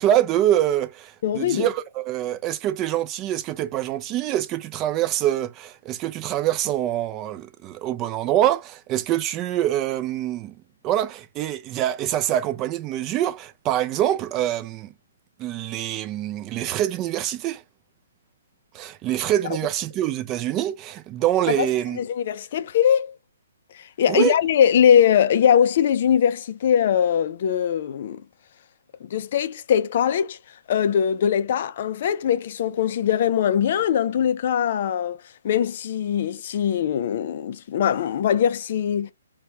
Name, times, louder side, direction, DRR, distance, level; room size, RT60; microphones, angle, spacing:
voice 1, 0.0-10.5 10.8-14.9 15.4-17.6 18.7-22.0 24.1-24.3, right 12 dB, 25° right, 0.5 m, -25 dB
voice 2, 1.2-1.7 21.6-21.7 22.0-23.1 23.7-28.2 29.0-30.4 30.7-35.2 35.4-39.1, left 9 dB, 50° left, 0.4 m, -21 dB
4.4 x 2.2 x 2.8 m
hypercardioid pair, 140°, 0 cm